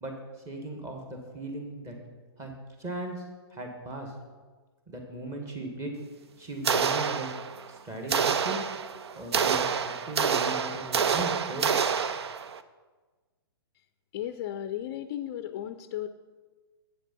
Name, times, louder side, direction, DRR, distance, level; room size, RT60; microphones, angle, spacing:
voice 1, 0.0-2.0 2.4-2.5 2.8-4.1 4.9-6.0 6.4-7.3 7.7-8.6 9.2-11.8, right 2 dB, 20° right, 2 dB, 1.8 m, -37 dB
sound 1, 6.6-7.7 8.1-12.6, right 6 dB, 70° right, 0.5 m, -27 dB
voice 2, 14.1-16.1, left 11 dB, 40° left, 10 dB, 0.4 m, -35 dB
8.1 x 7.3 x 5.4 m, 1.3 s
hypercardioid pair, 130°, 14 cm